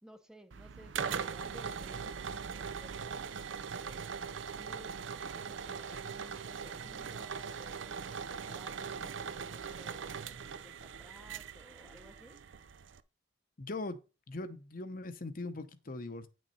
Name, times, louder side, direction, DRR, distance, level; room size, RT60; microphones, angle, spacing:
voice 1, 0.0-3.2 3.8-4.1 4.6-4.9 5.3-8.1 8.4-12.4, equal, 5° right, 0.8 m, -56 dB
sound 1, 0.5-13.0, right 6 dB, 65° right, 0.5 m, -41 dB
voice 2, 13.6-14.0 14.3-16.3, left 2 dB, 45° left, 0.8 m, -40 dB
9.5 x 6.2 x 4.2 m
head